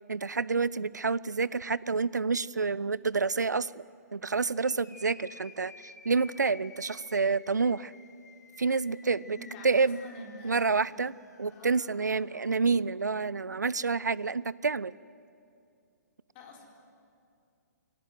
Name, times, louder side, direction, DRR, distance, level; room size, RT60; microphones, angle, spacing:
voice 1, 0.1-3.9 4.1-7.9 8.6-9.4 9.6-10.0 10.4-15.0, right 4 dB, 75° right, 21 dB, 0.5 m, -28 dB
sound 1, 4.6-12.5, left 4 dB, 65° left, 2.2 m, -53 dB
voice 2, 9.3-10.9 11.5-11.8 16.3-16.6, left 1 dB, 30° left, 0 dB, 4.4 m, -47 dB
23.5 x 17.5 x 9.4 m, 2.4 s
figure-of-eight pair, 125°, 10 cm